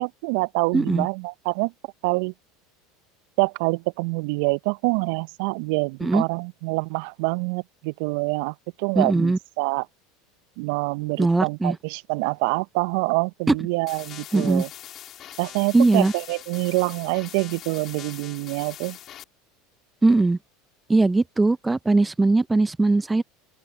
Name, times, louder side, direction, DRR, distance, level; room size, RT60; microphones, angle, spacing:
voice 1, 0.0-1.7 2.0-2.3 3.4-9.9 10.6-14.7 15.4-19.0, right 29 dB, 60° right, 1.0 m, -26 dB
voice 2, 0.7-1.1 6.0-6.2 8.9-9.4 11.2-11.8 13.5-13.6 14.3-14.6 15.7-16.1 20.0-20.4 20.9-23.2, right 3 dB, 15° right, 1.2 m, -20 dB
sound 1, 13.9-19.2, left 12 dB, 45° left, 4.0 m, -42 dB
open air
hypercardioid pair, 75°, 0 cm